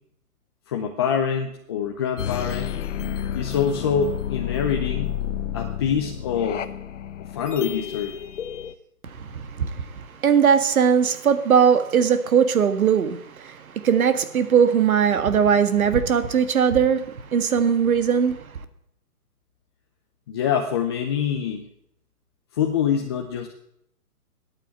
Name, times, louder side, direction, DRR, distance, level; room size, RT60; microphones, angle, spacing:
voice 1, 0.7-2.7 3.3-5.2 5.5-6.6 7.3-8.2 20.3-21.6 22.5-23.5, left 7 dB, 15° left, 0.6 m, -25 dB
sound 1, 2.2-8.7, left 10 dB, 50° left, 1.0 m, -30 dB
voice 2, 9.1-18.5, right 7 dB, 65° right, 1.8 m, -20 dB
12.5 x 9.1 x 8.4 m
hypercardioid pair, 145°, 46 cm